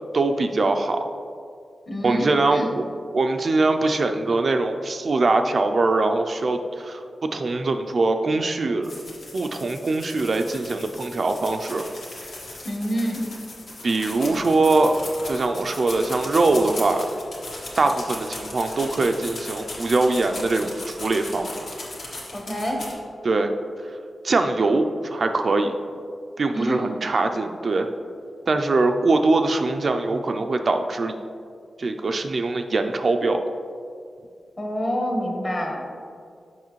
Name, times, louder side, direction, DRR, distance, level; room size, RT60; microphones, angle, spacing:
voice 1, 0.1-1.1 2.0-2.8 3.1-7.0 7.3-8.9 9.3-11.8 13.8-15.0 15.3-17.1 17.8-21.7 23.2-23.5 24.2-25.8 26.4-27.9 28.5-31.2 31.8-33.4, right 3 dB, 45° right, 6 dB, 0.3 m, -22 dB
voice 2, 1.9-2.7 12.6-13.2 22.3-22.8 26.5-26.9 34.6-35.8, equal, 35° left, 0 dB, 1.0 m, -27 dB
sound 1, 8.8-22.9, left 2 dB, 75° left, 1.5 m, -37 dB
7.2 x 5.4 x 3.0 m, 2.3 s
wide cardioid pair, 145°, 0 cm